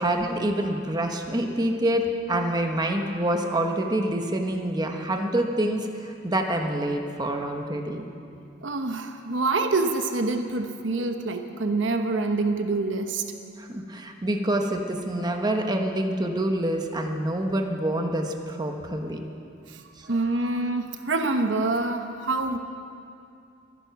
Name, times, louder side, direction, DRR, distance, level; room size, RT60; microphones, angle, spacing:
voice 1, 0.0-8.0 13.6-19.2 20.0-20.1, right 1 dB, 20° right, 3 dB, 1.1 m, -26 dB
voice 2, 8.6-13.2 19.7-19.8 20.1-22.6, right 3 dB, 65° right, 6 dB, 1.0 m, -26 dB
23.0 x 10.5 x 6.0 m, 2.5 s
head